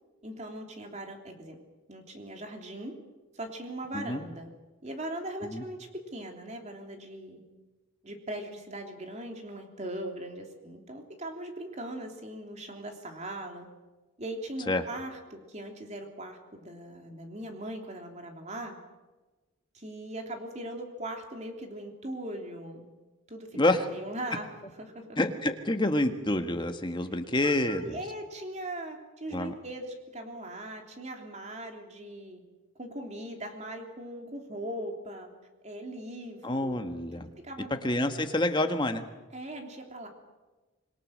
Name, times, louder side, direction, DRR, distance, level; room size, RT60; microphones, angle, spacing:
voice 1, 0.2-1.5 1.9-3.0 3.3-4.5 4.8-7.4 8.0-13.7 14.2-18.8 19.7-22.9 23.3-25.2 27.4-32.4 32.8-35.3 35.6-37.9 39.3-40.1, right 1 dB, 35° right, 3 dB, 3.3 m, -40 dB
voice 2, 23.5-23.8 25.2-28.0 29.3-29.5 36.4-37.3 37.8-39.0, left 1 dB, 25° left, 6 dB, 1.6 m, -28 dB
26.5 x 21.5 x 6.6 m, 1.2 s
head